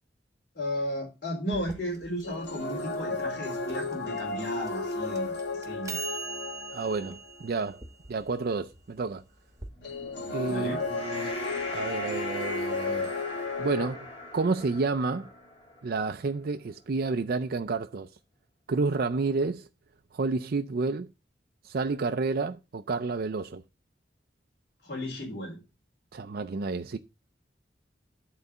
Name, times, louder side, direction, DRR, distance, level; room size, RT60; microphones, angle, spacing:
voice 1, 0.6-6.0 10.4-10.8 24.8-25.6, equal, 55° left, 3.6 m, -34 dB
sound 1, 1.5-9.7, right 5 dB, 20° right, 1.2 m, -43 dB
sound 2, 2.2-7.3 9.8-13.9, left 3 dB, 70° left, 1.4 m, -33 dB
voice 2, 6.7-7.8 8.1-9.2 10.3-11.4 11.7-13.1 13.6-15.3 15.8-18.1 18.7-19.7 20.1-21.1 21.6-23.6 26.1-27.0, right 3 dB, 60° right, 0.4 m, -30 dB
sound 3, 9.6-16.2, left 1 dB, 35° left, 4.3 m, -41 dB
10.5 x 4.0 x 6.6 m
head